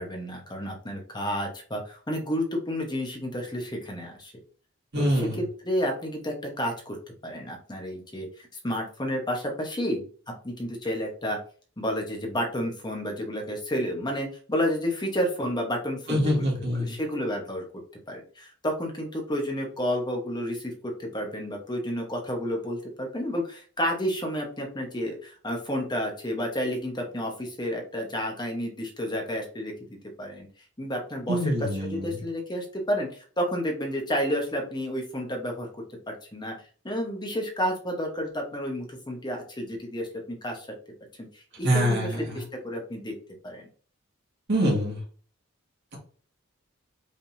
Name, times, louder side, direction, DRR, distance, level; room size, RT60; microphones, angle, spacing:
voice 1, 0.0-4.3 4.9-5.3 5.6-7.0 7.2-10.1 10.4-11.4 11.8-17.6 18.1-30.5 30.8-36.5 36.8-40.7 41.3-43.1 43.4-43.7, equal, 20° left, 1 dB, 1.1 m, -31 dB
voice 2, 4.9-5.4 16.1-16.9 31.3-32.1 41.6-42.4 44.5-45.0, equal, 60° right, -3 dB, 1.9 m, -25 dB
5.2 x 3.7 x 2.7 m, 0.43 s
head